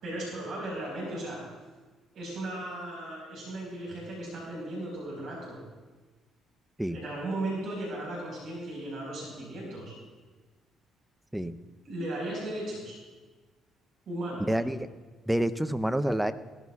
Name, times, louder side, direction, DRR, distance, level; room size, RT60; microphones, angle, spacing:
voice 1, 0.0-1.4 2.1-5.6 6.9-9.9 11.8-13.0 14.1-14.4, right 1 dB, 60° right, -3 dB, 4.7 m, -36 dB
voice 2, 14.4-14.9 15.3-16.3, right 1 dB, 5° right, 11 dB, 0.7 m, -28 dB
17.5 x 14.5 x 2.4 m, 1.3 s
hypercardioid pair, 55°, 0 cm